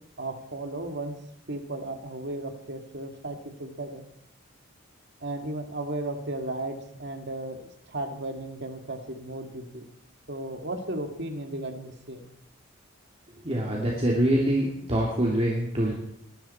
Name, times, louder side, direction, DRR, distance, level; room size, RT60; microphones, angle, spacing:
voice 1, 0.2-4.1 5.2-7.6 7.9-9.8 10.3-12.3, right 2 dB, 60° right, 5 dB, 2.1 m, -35 dB
voice 2, 13.4-15.9, right 1 dB, 30° right, -3 dB, 2.7 m, -25 dB
22.0 x 12.5 x 4.4 m, 0.72 s
head